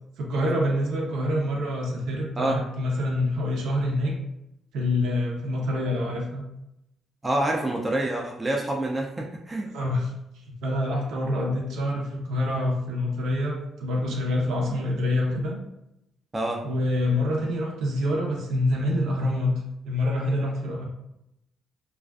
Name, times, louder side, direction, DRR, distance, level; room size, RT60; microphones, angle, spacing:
voice 1, 0.2-4.1 4.7-6.4 9.7-10.1 10.4-15.5 16.6-19.5 19.8-20.8, left 1 dB, 85° right, -1 dB, 0.6 m, -26 dB
voice 2, 7.2-9.7 16.3-16.6, right 1 dB, 20° right, -1 dB, 0.3 m, -27 dB
2.4 x 2.3 x 2.3 m, 0.85 s
cardioid pair, 90°, 0 cm